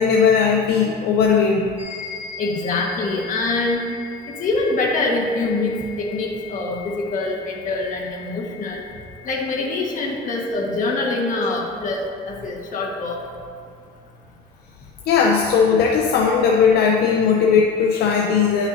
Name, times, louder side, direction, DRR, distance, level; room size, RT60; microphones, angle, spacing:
voice 1, 0.0-1.6 15.1-18.7, left 6 dB, 70° left, 0 dB, 0.7 m, -17 dB
sound 1, 1.8-10.5, left 7 dB, 20° left, 2.0 m, -40 dB
voice 2, 2.4-3.9 4.4-8.8 9.2-12.0 12.3-13.2, left 2 dB, 50° left, -2 dB, 1.6 m, -24 dB
11.0 x 5.9 x 2.7 m, 2.3 s
cardioid pair, 110°, 17 cm